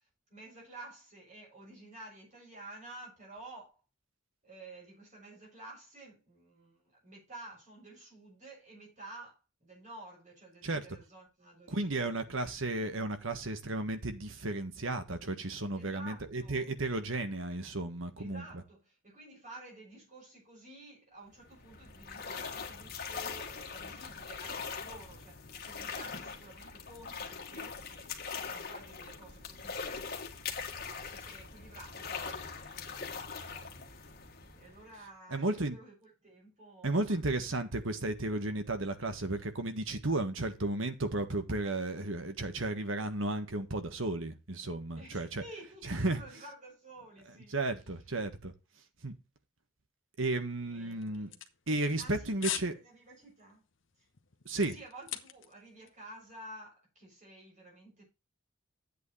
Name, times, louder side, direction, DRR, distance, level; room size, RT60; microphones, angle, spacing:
voice 1, 0.3-3.8 4.4-12.2 15.8-16.7 18.2-33.9 34.5-37.2 45.0-47.6 50.7-51.4 52.0-53.6 54.0-54.1 54.7-58.0, right 2 dB, 40° right, 7.3 m, -52 dB
voice 2, 11.7-18.4 35.3-35.8 36.8-45.4 45.8-46.2 47.5-48.5 49.0-49.2 50.2-51.3 51.7-52.7 54.4-54.8, right 2 dB, 70° right, 1.5 m, -33 dB
sound 1, 21.3-35.1, left 5 dB, 50° left, 1.7 m, -42 dB
sound 2, 51.0-52.1 52.4-52.7 53.1-53.3 53.8-55.6 55.9-56.0, left 11 dB, 65° left, 1.1 m, -39 dB
11.0 x 8.3 x 3.2 m
head